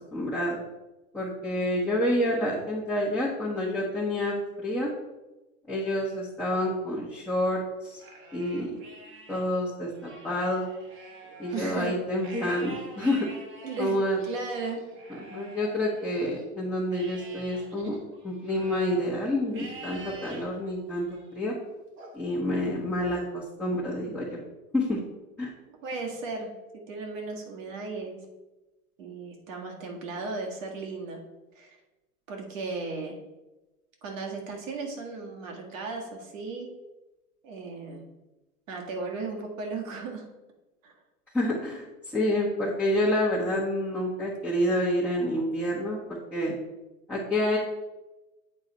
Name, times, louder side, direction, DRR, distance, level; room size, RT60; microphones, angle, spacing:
voice 1, 0.1-0.6 1.1-4.9 5.7-8.0 8.3-8.7 9.3-10.6 11.4-13.3 13.8-14.2 15.1-18.0 18.2-21.5 22.1-24.4 24.7-25.0 25.4-25.5 41.3-46.0 46.3-46.6 47.1-47.6, left 1 dB, 5° left, -7 dB, 1.3 m, -28 dB
Livestock farm animals working animals, 7.8-9.4 9.9-16.4 16.9-19.0 19.5-20.4 21.0-21.4 22.0-23.0, right 2 dB, 25° right, 1.4 m, -47 dB
voice 2, 11.5-11.9 13.6-14.0 14.2-14.8 25.8-26.5 26.9-28.2 29.0-31.2 31.6-31.8 32.3-33.2 34.0-36.7 37.4-38.0 38.7-40.3 40.8-41.0, right 4 dB, 60° right, 1 dB, 1.9 m, -35 dB
8.6 x 4.0 x 4.0 m, 1.1 s
hypercardioid pair, 110°, 45 cm